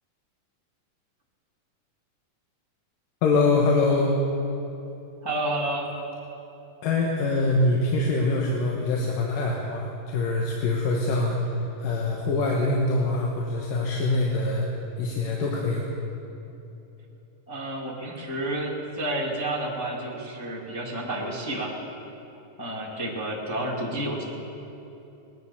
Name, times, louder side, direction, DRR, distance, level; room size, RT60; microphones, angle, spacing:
voice 1, 3.2-4.2 6.8-14.7 15.0-15.8, left 2 dB, 80° left, -1 dB, 2.7 m, -24 dB
voice 2, 5.2-5.9 17.5-21.7 22.6-24.2, right 1 dB, 15° left, -4 dB, 1.0 m, -30 dB
20.0 x 9.5 x 6.9 m, 3.0 s
omnidirectional pair, 3.9 m